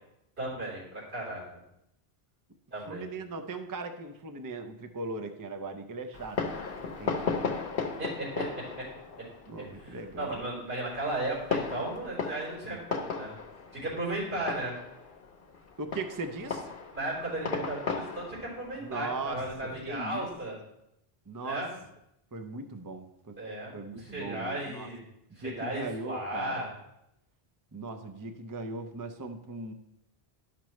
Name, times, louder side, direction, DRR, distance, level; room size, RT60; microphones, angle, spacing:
voice 1, 0.4-1.4 2.7-3.0 8.0-8.8 9.6-13.4 13.7-14.7 16.9-20.6 21.4-21.7 23.4-25.0 25.4-26.7, right 1 dB, 80° right, -6 dB, 4.0 m, -35 dB
voice 2, 2.9-7.6 9.5-10.4 15.8-16.7 18.8-19.4 19.8-20.3 21.3-21.6 22.3-23.4 23.7-24.9 25.4-26.7 27.7-29.7, right 3 dB, 25° right, 6 dB, 0.4 m, -39 dB
Fireworks, 6.1-20.3, left 5 dB, 65° left, 1.0 m, -37 dB
11.5 x 6.0 x 3.1 m, 0.83 s
omnidirectional pair, 1.1 m